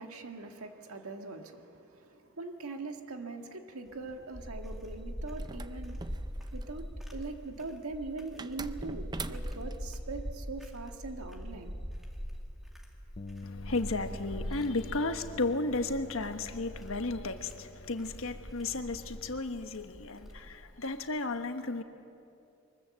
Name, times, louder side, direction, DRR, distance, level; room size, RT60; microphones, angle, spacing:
voice 1, 0.0-6.0 6.5-6.9 7.1-11.7, right 3 dB, 90° right, 4 dB, 1.7 m, -42 dB
sound 1, 3.9-20.7, equal, ahead, 2.2 m, -42 dB
sound 2, 5.4-6.8 8.4-9.8, right 4 dB, 20° right, 0.5 m, -43 dB
Bass guitar, 13.2-19.4, left 3 dB, 35° left, 0.4 m, -48 dB
voice 2, 13.4-21.8, left 2 dB, 70° left, 7 dB, 1.3 m, -34 dB
23.5 x 20.5 x 7.7 m, 2.6 s
head